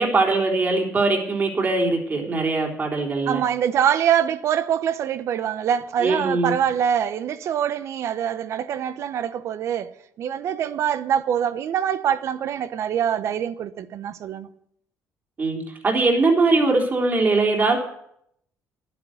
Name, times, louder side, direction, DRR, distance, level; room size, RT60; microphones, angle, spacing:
voice 1, 0.0-3.4 6.0-6.5 15.4-17.8, right 3 dB, 35° right, 3.6 m, -21 dB
voice 2, 3.3-9.9 10.2-14.5, right 9 dB, 60° right, 0.9 m, -24 dB
11.5 x 10.0 x 7.9 m
cardioid pair, 100°, 5 cm